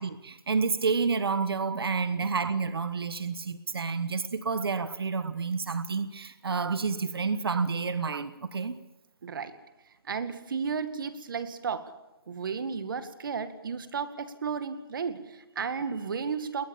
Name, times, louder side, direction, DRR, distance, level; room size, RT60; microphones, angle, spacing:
voice 1, 0.0-8.8, right 5 dB, 80° right, 13 dB, 1.3 m, -29 dB
voice 2, 9.2-9.5 10.0-11.9 12.3-16.7, right 6 dB, 60° right, 10 dB, 2.1 m, -33 dB
20.5 x 20.0 x 7.2 m, 0.97 s
hypercardioid pair, 160°, 12 cm